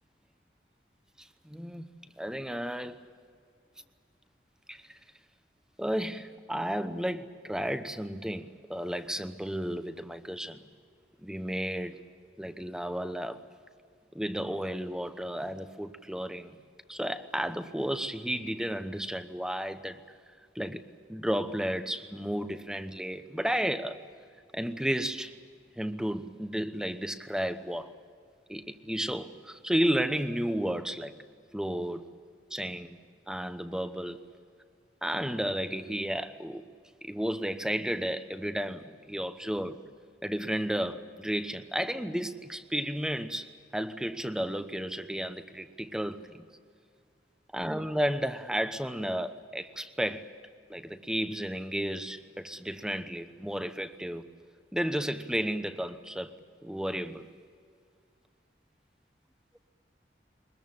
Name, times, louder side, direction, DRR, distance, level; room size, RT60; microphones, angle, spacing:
voice 1, 1.2-1.9 2.2-3.1 4.7-4.8 5.8-10.6 11.2-12.0 12.4-13.4 14.1-16.6 16.9-20.0 20.5-24.0 24.5-25.3 25.8-27.9 28.5-31.1 31.5-32.0 32.5-33.0 33.3-34.2 35.0-36.6 37.0-39.8 40.2-46.5 47.5-50.3 50.7-54.3 54.7-56.3 56.6-57.3, equal, 5° right, 1.0 m, -33 dB
23.5 x 21.0 x 8.8 m
head